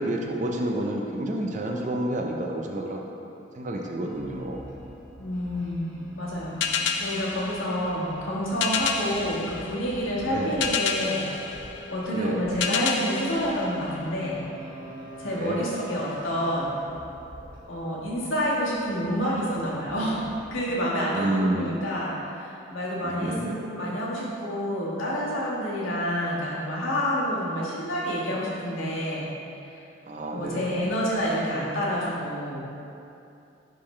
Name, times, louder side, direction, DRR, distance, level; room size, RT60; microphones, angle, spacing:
voice 1, 0.0-3.0 3.6-4.6 10.2-10.6 12.1-12.4 15.3-15.6 21.1-21.7 23.0-23.5 30.1-30.7, right 1 dB, 40° right, 1 dB, 0.5 m, -29 dB
sound 1, 4.0-20.5, equal, 5° left, 1.3 m, -44 dB
voice 2, 5.2-11.4 11.9-14.4 15.2-16.8 17.7-20.2 20.5-29.3 29.6-29.8 30.3-32.6, equal, 85° left, -6 dB, 1.5 m, -28 dB
sound 2, 6.6-14.5, left 6 dB, 65° left, 0.4 m, -31 dB
10.5 x 3.8 x 3.2 m, 2.7 s
head